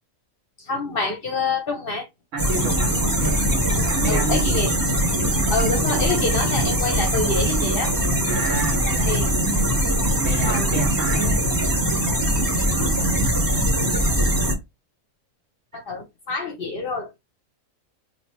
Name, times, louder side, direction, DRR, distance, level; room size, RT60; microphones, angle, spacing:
voice 1, 0.6-2.1 4.1-4.7 5.5-7.9 8.9-9.3 10.5-10.7 12.7-12.9 15.7-17.2, left 3 dB, 50° left, 0.8 m, -27 dB
voice 2, 2.3-3.4 3.8-4.7 8.2-9.1 10.2-11.3, right 3 dB, 65° right, 1.4 m, -29 dB
sound 1, 2.4-14.5, right 1 dB, 15° right, 1.2 m, -21 dB
2.9 x 2.7 x 4.3 m
omnidirectional pair, 1.4 m